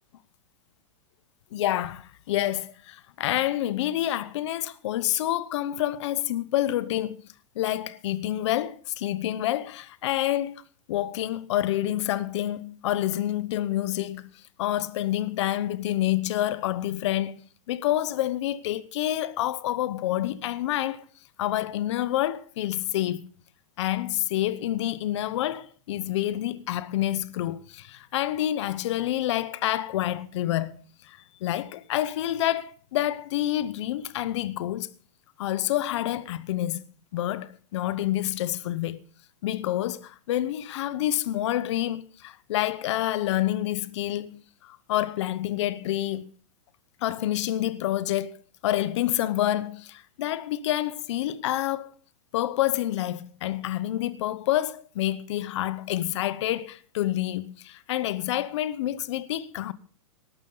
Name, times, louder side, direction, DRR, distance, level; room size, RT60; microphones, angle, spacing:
voice 1, 1.5-7.2 7.6-10.6 10.9-17.4 17.7-21.0 21.4-23.3 23.8-34.9 35.4-36.8 37.1-39.0 39.4-46.3 47.0-51.9 52.3-59.7, left 13 dB, 55° left, 0.9 m, -28 dB
18.5 x 12.5 x 3.9 m
supercardioid pair, 160°, 18 cm